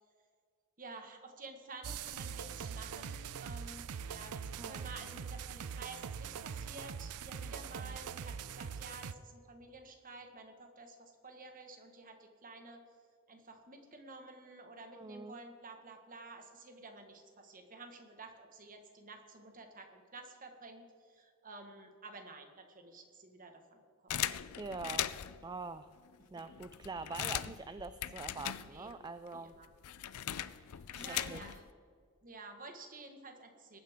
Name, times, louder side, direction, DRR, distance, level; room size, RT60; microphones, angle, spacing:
voice 1, 0.8-12.8 13.3-24.5 26.2-26.4 28.6-28.9 29.3-29.7 30.4-31.6 32.2-33.8, right 3 dB, 40° right, 5 dB, 1.6 m, -51 dB
sound 1, 1.8-9.1, right 7 dB, 85° right, 0.5 m, -43 dB
voice 2, 14.9-15.4 24.6-25.1 25.4-25.9 26.3-29.5 30.9-31.4, right 4 dB, 20° right, 11 dB, 0.3 m, -44 dB
sound 2, 24.1-25.5 26.1-26.2 26.4-29.1 29.3-31.7, left 11 dB, 80° left, 0.5 m, -39 dB
21.0 x 9.3 x 3.7 m, 2.1 s
head